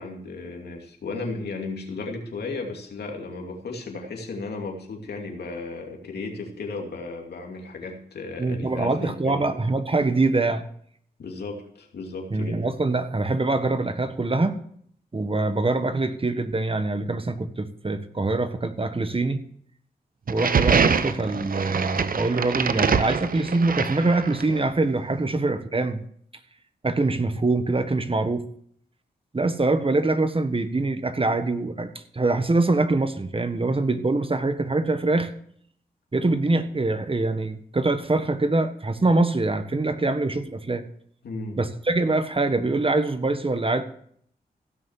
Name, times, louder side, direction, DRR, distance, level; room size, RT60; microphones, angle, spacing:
voice 1, 0.0-9.5 11.2-12.6 41.2-41.6, left 3 dB, 85° left, 2 dB, 2.7 m, -35 dB
voice 2, 8.4-10.6 12.3-14.6 15.1-19.4 20.3-26.0 26.8-28.4 29.3-35.3 36.1-40.8 41.6-43.8, right 2 dB, 35° right, 9 dB, 1.5 m, -24 dB
sound 1, 20.3-24.6, right 6 dB, 60° right, 0.9 m, -24 dB
16.0 x 6.6 x 7.3 m, 0.63 s
cardioid pair, 50°, 17 cm